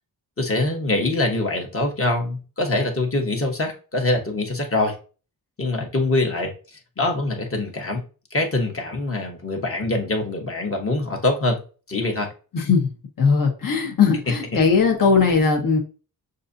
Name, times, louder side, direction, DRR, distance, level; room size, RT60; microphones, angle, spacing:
voice 1, 0.4-5.0 5.6-6.5 7.0-8.0 8.3-11.6 11.9-12.3, left 2 dB, 35° left, 2 dB, 1.1 m, -24 dB
voice 2, 12.5-12.9 13.2-15.8, left 5 dB, 55° left, 1 dB, 1.2 m, -19 dB
6.4 x 2.7 x 2.6 m, 0.36 s
wide cardioid pair, 95°, 39 cm